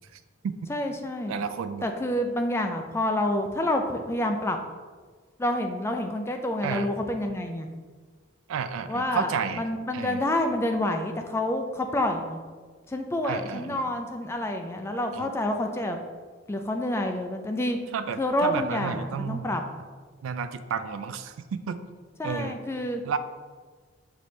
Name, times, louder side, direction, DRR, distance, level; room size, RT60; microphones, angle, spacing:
voice 1, 0.1-0.5 1.3-1.9 6.6-6.9 8.5-9.7 9.9-10.2 13.2-13.9 15.1-15.3 17.9-19.6 20.2-21.8 22.2-22.6 23.0-23.2, right 6 dB, 80° right, 11 dB, 0.3 m, -32 dB
voice 2, 0.7-1.4 1.8-4.6 5.4-7.7 8.9-9.3 9.6-12.4 12.9-16.0 16.5-17.8 18.2-19.6 22.2-23.0, left 1 dB, 15° left, 4 dB, 0.3 m, -28 dB
6.0 x 2.7 x 3.1 m, 1.5 s
head